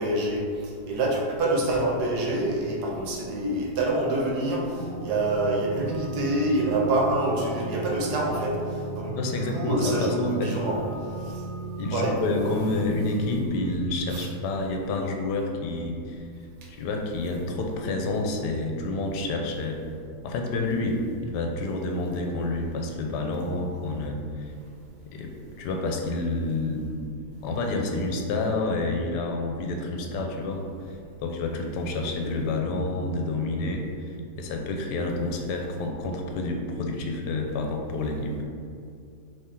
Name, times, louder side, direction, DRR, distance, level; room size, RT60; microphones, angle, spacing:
voice 1, 0.0-8.6 8.9-9.2 9.5-10.8 11.2-11.4 11.9-12.1 14.1-14.3, right 1 dB, 75° right, -2 dB, 1.3 m, -26 dB
sound 1, 4.6-14.2, right 2 dB, 55° left, 0.8 m, -36 dB
voice 2, 9.2-10.5 11.8-16.2 16.7-19.8 20.2-24.5 25.1-25.3 25.6-26.8 27.4-38.3, left 2 dB, 85° left, 2 dB, 1.2 m, -29 dB
3.6 x 3.1 x 4.2 m, 2.4 s
omnidirectional pair, 1.8 m